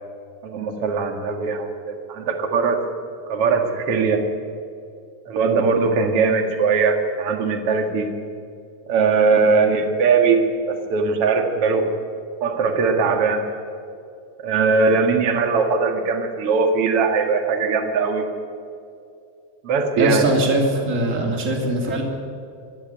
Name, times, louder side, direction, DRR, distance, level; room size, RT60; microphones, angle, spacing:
voice 1, 0.4-2.8 3.3-4.3 5.3-8.1 8.9-10.4 10.7-11.9 12.4-13.4 14.4-18.2 19.6-20.2, right 4 dB, 50° right, 5 dB, 2.7 m, -20 dB
voice 2, 20.0-22.0, right 1 dB, 25° right, 2 dB, 3.3 m, -21 dB
24.5 x 13.5 x 9.5 m, 2.5 s
omnidirectional pair, 3.5 m